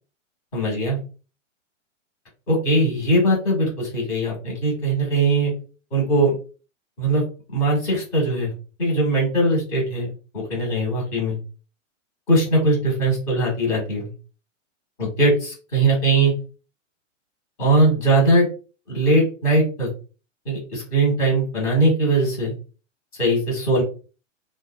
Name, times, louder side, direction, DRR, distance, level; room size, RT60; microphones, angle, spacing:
voice 1, 0.5-1.0 2.5-5.5 5.9-6.3 7.0-7.2 7.5-8.5 8.8-11.4 12.3-14.1 15.0-16.3 17.6-18.5 18.9-19.9 20.4-22.5 23.2-23.8, right 2 dB, 30° left, -3 dB, 1.3 m, -20 dB
2.7 x 2.3 x 2.2 m, 0.35 s
hypercardioid pair, 170°, 38 cm